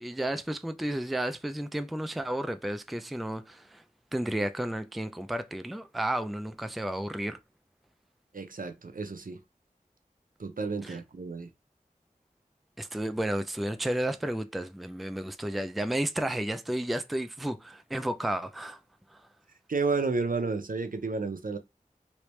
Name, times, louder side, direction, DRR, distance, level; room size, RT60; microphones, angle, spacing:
voice 1, 0.0-3.8 4.1-7.4 10.8-11.0 12.8-18.8, right 1 dB, ahead, 0.3 m, -32 dB
voice 2, 8.3-9.4 10.4-11.5 19.7-21.6, right 4 dB, 70° right, 0.6 m, -31 dB
3.2 x 3.0 x 3.1 m
wide cardioid pair, 45°, 15 cm